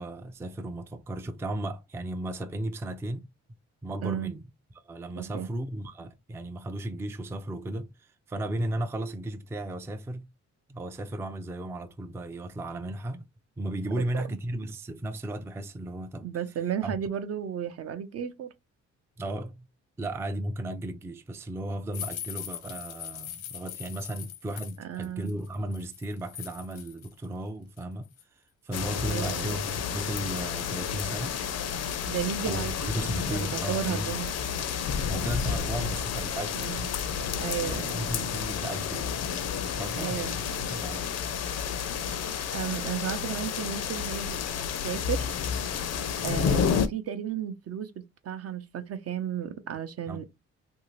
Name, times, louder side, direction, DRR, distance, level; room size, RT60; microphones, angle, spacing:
voice 1, 0.0-3.3 3.8-4.4 4.8-10.3 10.7-13.2 13.6-16.3 16.8-17.0 19.2-19.7 20.0-28.1 28.6-31.4 32.5-34.2 35.1-36.8 37.6-39.1 39.7-40.3 40.7-41.1 50.1-50.2, right 1 dB, 10° right, 0.4 m, -35 dB
voice 2, 4.0-4.3 5.2-5.5 14.0-14.1 16.2-18.5 24.8-25.3 29.0-29.5 32.1-32.9 33.3-34.3 36.6-36.9 37.3-38.1 40.0-40.4 42.5-44.4 44.8-45.3 46.2-50.2, right 9 dB, 50° right, 0.6 m, -33 dB
sound 1, 21.9-27.3 27.6-28.2 28.8-28.9 29.3-30.0 30.5-30.6 30.9-31.0 31.5-32.1 33.1-35.2 35.7-35.8 36.2-36.8 37.7-38.0 38.3-38.5 38.9-39.0, left 10 dB, 85° left, 0.9 m, -43 dB
sound 2, 28.7-46.9, left 7 dB, 55° left, 0.6 m, -31 dB
2.8 x 2.7 x 3.0 m
cardioid pair, 90°, 30 cm